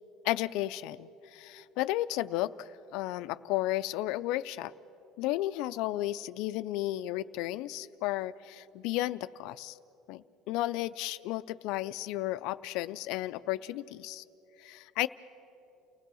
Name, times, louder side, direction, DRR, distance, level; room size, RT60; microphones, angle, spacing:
voice 1, 0.2-4.7 5.2-9.8 10.1-14.2 14.6-15.1, left 16 dB, 75° left, 13 dB, 0.4 m, -33 dB
29.5 x 16.5 x 6.2 m, 2.9 s
cardioid pair, 125°, 0 cm